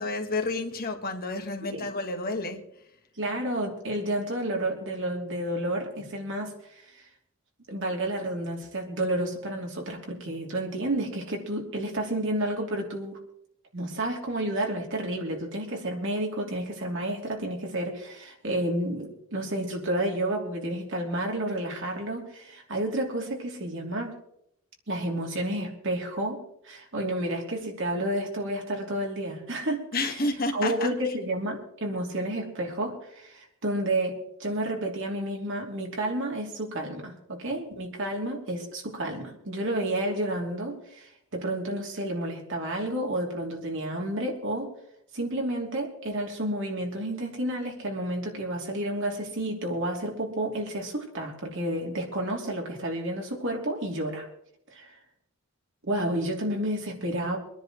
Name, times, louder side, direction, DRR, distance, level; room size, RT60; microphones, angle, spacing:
voice 1, 0.0-2.6 29.9-31.1, left 2 dB, 45° left, 5 dB, 1.6 m, -30 dB
voice 2, 3.2-7.0 7.7-13.2 13.7-24.1 24.9-26.4 26.6-29.9 30.5-44.7 45.1-54.2 54.7-55.0 55.8-57.4, right 1 dB, 60° right, 0 dB, 3.0 m, -30 dB
25.5 x 10.5 x 3.1 m, 0.74 s
head